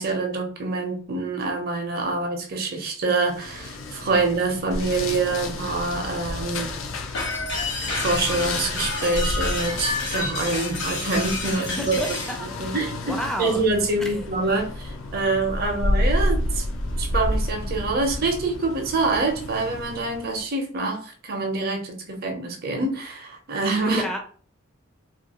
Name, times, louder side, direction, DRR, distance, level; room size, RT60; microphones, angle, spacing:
voice 1, 0.0-6.7 7.9-12.2 12.6-16.6 17.0-24.0, right 3 dB, 50° right, 3 dB, 0.6 m, -26 dB
sound 1, 3.3-20.4, left 1 dB, 85° left, 0.4 m, -30 dB
sound 2, 7.1-12.4, left 3 dB, 65° left, 0.9 m, -29 dB
voice 2, 11.6-12.1 12.6-12.8 13.1-13.7 14.1-14.3 23.9-24.2, equal, 5° left, 2 dB, 0.4 m, -30 dB
2.5 x 2.4 x 2.8 m, 0.43 s
head